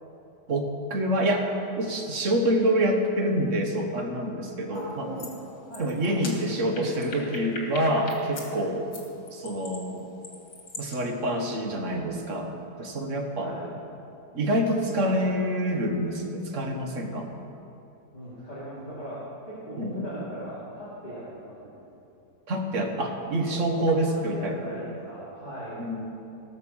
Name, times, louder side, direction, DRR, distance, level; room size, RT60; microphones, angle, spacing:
voice 1, 0.5-1.5 1.8-5.1 5.8-8.9 9.3-10.1 10.8-13.5 14.3-17.3 19.8-20.1 22.5-24.7 25.8-26.1, right 1 dB, 50° right, 2 dB, 1.5 m, -27 dB
sound 1, 4.7-4.9 5.2-5.3 5.7-8.5 8.9-10.9, left 3 dB, 85° left, 2.6 m, -40 dB
voice 2, 4.7-6.1 6.7-7.2 8.5-8.7 13.4-13.7 18.1-21.8 23.3-25.8, equal, 25° left, -12 dB, 3.1 m, -38 dB
19.0 x 6.8 x 6.2 m, 2.9 s
omnidirectional pair, 1.8 m